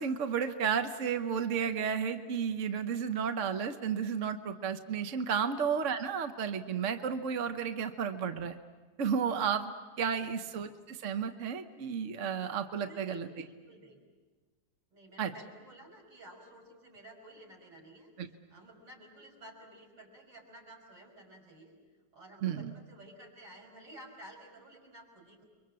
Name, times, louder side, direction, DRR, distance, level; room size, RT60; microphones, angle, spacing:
voice 1, 0.0-8.6 9.0-9.7 10.0-13.3 15.2-15.3 18.2-18.3 22.4-22.7, right 7 dB, 50° right, 7 dB, 1.2 m, -32 dB
voice 2, 12.8-14.0 14.9-18.1 18.5-21.7 22.1-25.4, right 1 dB, 80° right, 0 dB, 6.4 m, -53 dB
29.5 x 23.5 x 7.6 m, 1.3 s
omnidirectional pair, 1.9 m